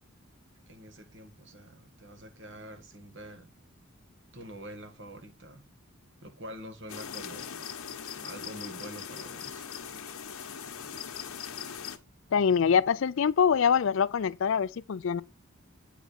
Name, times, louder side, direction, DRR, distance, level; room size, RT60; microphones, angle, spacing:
voice 1, 0.7-3.5 4.3-5.6 6.2-7.5 8.2-9.6, equal, 55° right, 1.5 m, -46 dB
sound 1, 6.9-12.0, left 7 dB, 80° left, 1.0 m, -40 dB
voice 2, 12.3-15.2, left 7 dB, 60° left, 0.4 m, -24 dB
8.2 x 5.1 x 4.1 m
head